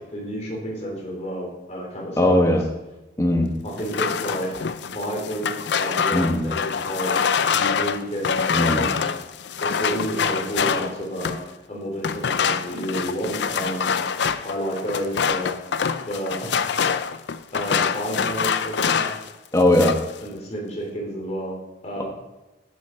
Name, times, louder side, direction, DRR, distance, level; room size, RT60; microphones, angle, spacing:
voice 1, 0.1-2.6 3.6-4.5 4.8-7.1 7.5-9.1 9.6-11.3 11.7-13.9 14.4-15.5 16.0-16.5 17.5-19.1 20.2-21.6 21.8-22.0, equal, 40° left, -3 dB, 3.3 m, -30 dB
voice 2, 2.2-2.6 3.2-3.6 6.1-6.5 8.5-8.9 19.5-19.9, left 1 dB, 20° left, 2 dB, 1.3 m, -19 dB
sound 1, 3.8-11.5 12.0-19.3 19.6-20.1, left 6 dB, 70° left, 0.5 m, -25 dB
13.0 x 6.1 x 4.5 m, 1.1 s
head